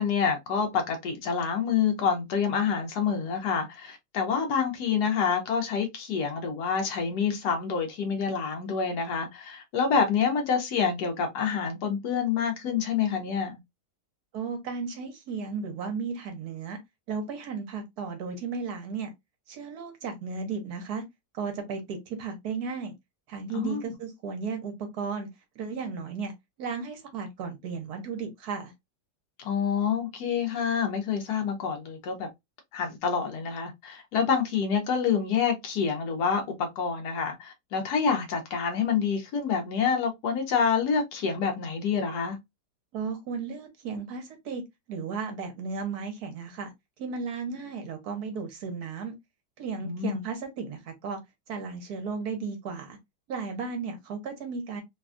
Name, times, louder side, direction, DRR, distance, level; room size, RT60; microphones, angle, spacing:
voice 1, 0.0-13.6 23.5-23.9 29.4-32.3 32.7-42.4 49.8-50.1, left 6 dB, 70° left, 1.3 m, -27 dB
voice 2, 14.3-16.8 17.1-19.1 19.5-21.0 21.3-22.9 23.3-25.3 25.6-26.3 26.6-28.7 42.9-44.6 44.9-46.7 47.0-49.1 49.6-51.2 51.5-53.0 53.3-54.8, right 5 dB, 65° right, 1.2 m, -34 dB
3.3 x 2.3 x 2.4 m
omnidirectional pair, 1.9 m